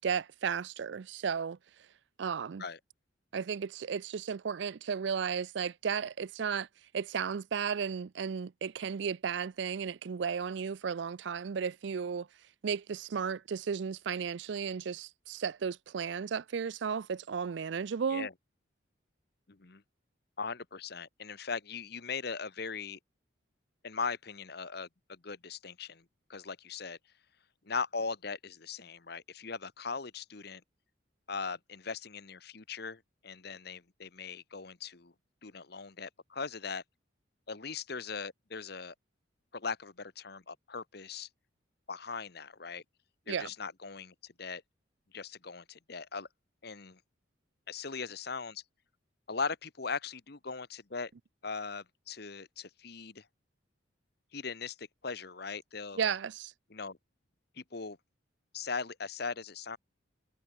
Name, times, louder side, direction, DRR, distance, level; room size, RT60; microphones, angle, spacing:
voice 1, 0.0-1.6 2.2-2.6 3.3-6.7 6.9-12.3 12.6-18.3 43.3-43.5 56.0-56.5, right 6 dB, 65° right, 0.4 m, -34 dB
voice 2, 19.5-19.8 20.4-23.0 23.8-26.0 26.3-27.0 27.7-30.6 31.3-35.1 35.4-36.8 37.5-38.9 39.5-41.3 41.9-42.8 43.3-44.6 45.1-46.3 46.6-47.0 47.7-48.6 49.3-51.1 51.4-53.2 54.3-56.0 56.7-57.0 57.6-58.0 58.5-59.8, left 5 dB, 55° left, 1.1 m, -39 dB
head